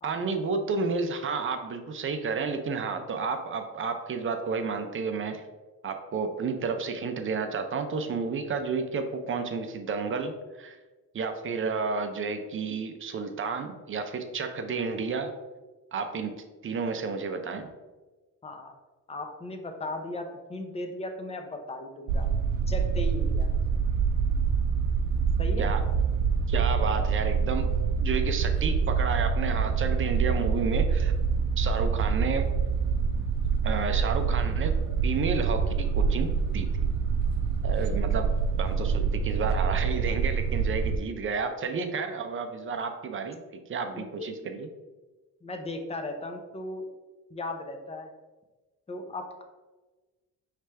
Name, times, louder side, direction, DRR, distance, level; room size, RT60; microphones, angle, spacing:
voice 1, 0.0-5.4 5.8-10.8 11.1-15.3 15.9-17.7 25.6-25.8 26.5-27.7 28.0-31.1 31.6-32.5 33.6-34.8 35.0-36.9 37.6-38.3 38.6-43.4 43.7-44.7, right 5 dB, 40° right, 7 dB, 0.5 m, -31 dB
voice 2, 18.4-18.7 19.1-22.3 22.7-23.5 25.4-25.7 37.9-38.0 42.8-42.9 43.9-44.3 45.4-46.8 47.3-48.1 48.9-49.4, left 2 dB, 20° left, 5 dB, 0.6 m, -37 dB
sound 1, 22.1-41.0, right 5 dB, 85° right, 0.5 m, -26 dB
4.9 x 3.3 x 3.3 m, 1.2 s
cardioid pair, 110°, 33 cm